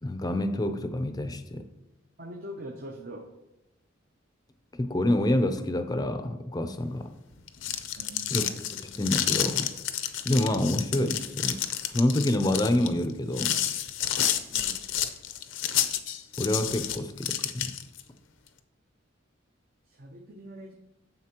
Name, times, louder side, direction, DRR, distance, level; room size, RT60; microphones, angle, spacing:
voice 1, 0.0-1.6 4.8-7.1 8.3-8.5 8.8-9.7 10.2-11.6 11.9-13.6 16.4-17.7, left 1 dB, 20° left, 9 dB, 0.5 m, -27 dB
voice 2, 2.2-3.3 8.0-8.4 14.5-14.8 19.9-20.7, equal, 50° right, 2 dB, 0.7 m, -42 dB
sound 1, 7.4-18.0, left 10 dB, 75° left, 0.6 m, -30 dB
9.4 x 7.1 x 2.9 m, 0.91 s
head